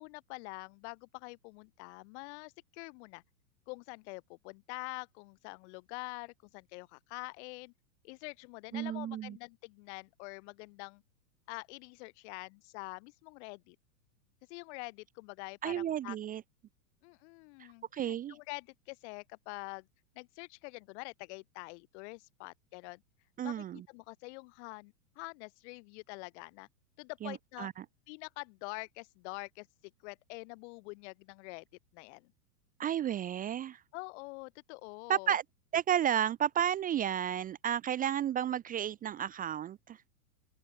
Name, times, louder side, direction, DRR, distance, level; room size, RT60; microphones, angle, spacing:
voice 1, 0.0-3.2 3.7-7.7 8.0-11.0 11.5-13.8 14.5-16.2 17.0-19.9 20.1-23.0 23.4-26.7 27.0-27.7 28.1-29.7 30.0-31.6 31.9-32.3 33.9-35.3, left 28 dB, 50° left, 1.6 m, -46 dB
voice 2, 8.7-9.4 15.6-16.4 17.6-18.4 23.4-23.8 27.2-27.8 32.8-33.8 35.1-35.4 35.7-40.0, right 10 dB, 20° right, 0.7 m, -32 dB
open air
hypercardioid pair, 120°, 45 cm